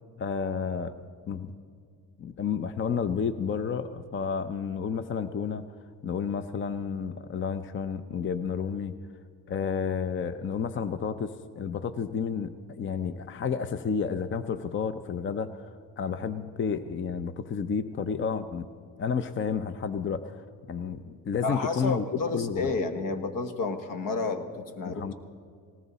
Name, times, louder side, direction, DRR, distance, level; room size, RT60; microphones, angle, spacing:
voice 1, 0.2-1.0 1.3-1.5 2.2-5.7 6.0-8.9 9.5-15.7 16.0-18.7 19.0-22.7 24.8-25.1, left 6 dB, 35° left, 12 dB, 0.6 m, -31 dB
voice 2, 21.4-25.1, left 3 dB, 70° left, 8 dB, 1.4 m, -31 dB
19.0 x 18.0 x 4.1 m, 2.2 s
cardioid pair, 105°, 34 cm